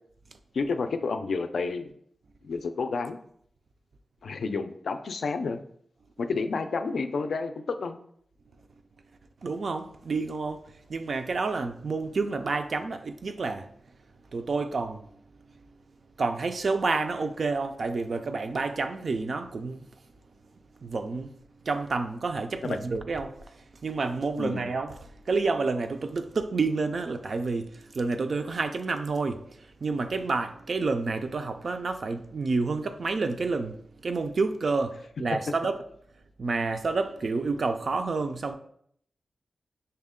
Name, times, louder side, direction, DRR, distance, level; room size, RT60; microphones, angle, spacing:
voice 1, 0.5-1.9 2.4-3.2 4.2-5.6 6.2-8.0 24.4-24.6, left 4 dB, 80° left, 0.3 m, -30 dB
voice 2, 9.4-13.7 14.3-15.1 16.2-19.9 20.8-21.4 21.6-29.4 29.8-35.8 36.4-38.5, right 3 dB, 55° right, 0.4 m, -29 dB
5.5 x 2.1 x 3.6 m
wide cardioid pair, 120°, 0 cm